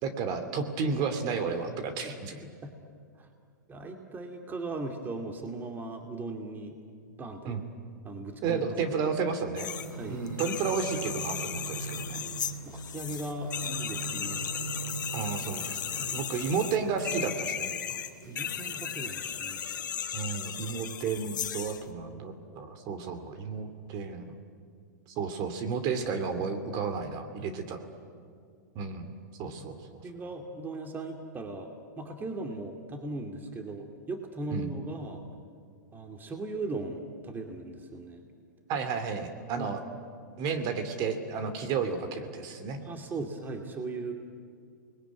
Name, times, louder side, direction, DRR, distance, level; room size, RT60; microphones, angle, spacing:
voice 1, 0.0-2.3 7.5-7.6 8.4-9.7 10.1-12.2 15.1-17.7 20.1-24.3 25.2-27.8 28.7-29.1 29.4-29.8 34.5-34.7 38.7-39.8 40.4-42.8, right 5 dB, 40° right, 8 dB, 2.7 m, -32 dB
voice 2, 2.0-2.7 3.2-3.3 3.7-6.8 7.2-7.6 8.0-8.7 9.9-10.2 12.6-14.6 16.0-16.2 17.9-18.0 18.3-19.6 27.4-27.5 29.4-29.5 30.0-31.7 32.0-35.2 35.9-38.2 39.5-39.7 42.8-44.1, right 3 dB, 20° right, 4 dB, 2.4 m, -38 dB
sound 1, 9.6-9.9 10.3-21.8, left 9 dB, 80° left, 1.6 m, -36 dB
sound 2, 9.7-17.6 18.2-19.5 20.1-20.2, right 4 dB, 90° right, 3.5 m, -41 dB
28.0 x 21.0 x 9.6 m, 2.2 s
hypercardioid pair, 120°, 10 cm